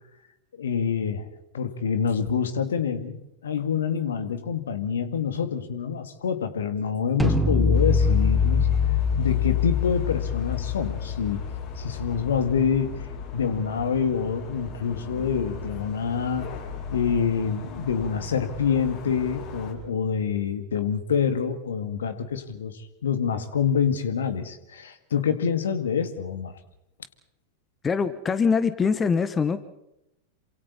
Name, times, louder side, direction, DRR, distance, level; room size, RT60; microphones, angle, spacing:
voice 1, 0.5-1.3 1.5-8.7 9.2-11.4 11.8-13.1 13.3-16.5 16.9-26.5, left 6 dB, 65° left, 10 dB, 2.2 m, -26 dB
sound 1, 7.2-13.2, left 5 dB, ahead, 3.3 m, -25 dB
sound 2, 7.7-19.7, left 3 dB, 50° left, 6.7 m, -37 dB
voice 2, 27.8-29.6, left 5 dB, 20° left, 13 dB, 1.3 m, -23 dB
28.5 x 26.5 x 4.2 m, 0.85 s
figure-of-eight pair, 90°, 0 cm